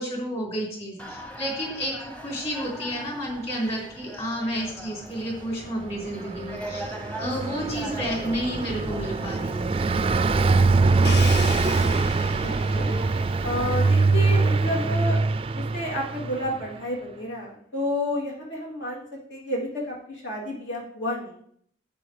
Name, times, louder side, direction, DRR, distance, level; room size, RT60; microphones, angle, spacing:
voice 1, 0.0-2.0 2.2-6.9 7.2-9.8, equal, 35° left, -2 dB, 3.8 m, -31 dB
sound 1, 1.0-11.0, right 1 dB, 10° left, 0.8 m, -41 dB
Car passing by, 5.7-16.7, right 3 dB, 30° right, 0.3 m, -23 dB
Crash cymbal, 11.0-14.9, left 4 dB, 60° left, 0.8 m, -37 dB
voice 2, 12.4-12.9 13.4-15.2 15.5-21.4, left 1 dB, 75° left, -4 dB, 3.2 m, -31 dB
11.5 x 8.5 x 3.3 m, 0.64 s
head